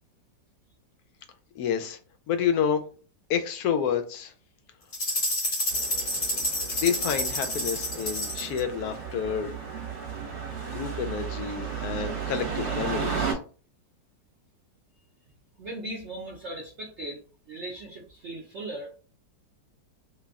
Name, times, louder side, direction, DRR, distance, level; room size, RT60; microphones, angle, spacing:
voice 1, 1.6-2.0 2.3-2.8 3.3-4.3 6.6-9.5 10.2-13.4, left 7 dB, 70° left, 8 dB, 0.9 m, -29 dB
sound 1, 4.9-8.6, left 1 dB, 50° left, 0.4 m, -29 dB
sound 2, 5.7-13.3, right 6 dB, 45° right, 1.0 m, -34 dB
voice 2, 15.6-19.0, right 1 dB, 70° right, -2 dB, 0.6 m, -38 dB
3.3 x 2.2 x 3.5 m, 0.38 s
omnidirectional pair, 2.0 m